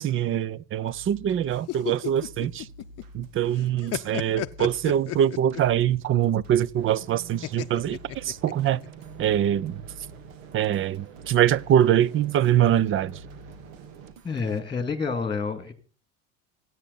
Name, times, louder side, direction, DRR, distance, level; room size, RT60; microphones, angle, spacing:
voice 1, 0.0-2.7 3.1-8.8 9.2-9.8 10.5-13.1, right 10 dB, 30° right, 0.6 m, -23 dB
sound 1, 0.9-14.6, right 1 dB, 55° right, 1.9 m, -49 dB
sound 2, 1.5-3.2 3.6-5.8 7.4-8.9, left 15 dB, 40° left, 0.7 m, -33 dB
sound 3, 6.7-14.1, right 8 dB, 80° right, 2.2 m, -47 dB
voice 2, 14.2-15.7, left 5 dB, 10° left, 2.3 m, -28 dB
25.5 x 9.2 x 4.1 m
supercardioid pair, 115°, 40 cm